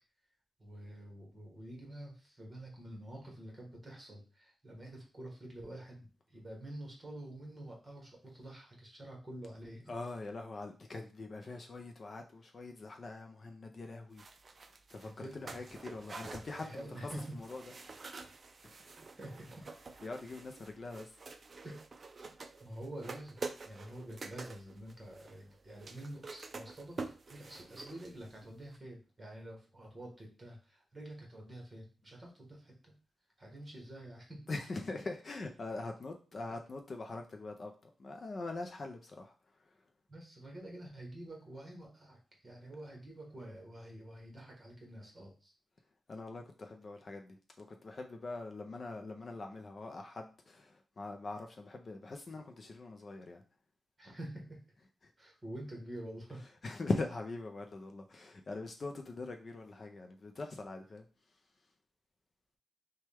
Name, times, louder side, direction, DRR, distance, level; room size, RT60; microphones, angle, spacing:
voice 1, 0.6-9.9 15.0-15.7 16.6-17.2 19.1-19.6 21.6-21.9 22.6-27.0 27.3-32.9 33.4-34.4 40.1-45.5 54.0-54.6 55.2-56.5, right 1 dB, 20° right, 0 dB, 1.3 m, -48 dB
voice 2, 9.9-14.2 14.7-18.0 18.6-19.1 20.0-21.2 34.5-39.8 46.1-53.4 54.8-55.1 56.3-61.1, left 3 dB, 35° left, 4 dB, 0.5 m, -43 dB
sound 1, 14.2-28.5 28.7-28.8, right 3 dB, 35° right, 0.4 m, -48 dB
6.0 x 2.3 x 3.4 m, 0.37 s
wide cardioid pair, 165°, 0 cm